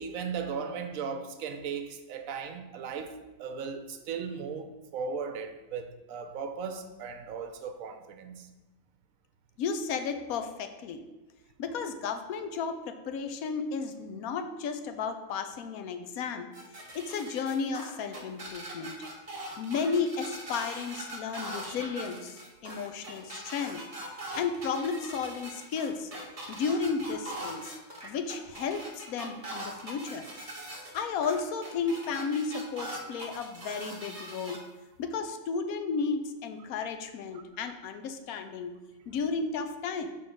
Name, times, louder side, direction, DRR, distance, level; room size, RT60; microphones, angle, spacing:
voice 1, 0.0-8.5 29.7-29.9 37.3-37.4, right 6 dB, 70° right, 1.0 m, -37 dB
voice 2, 9.6-11.0 11.6-16.5 16.9-19.0 19.6-23.8 24.3-26.1 26.5-27.8 28.0-30.3 30.9-34.6 35.0-38.7 39.1-40.1, left 5 dB, 80° left, 1.1 m, -33 dB
sound 1, 16.5-34.6, right 1 dB, 30° right, 1.0 m, -41 dB
6.8 x 3.7 x 5.2 m
omnidirectional pair, 1.5 m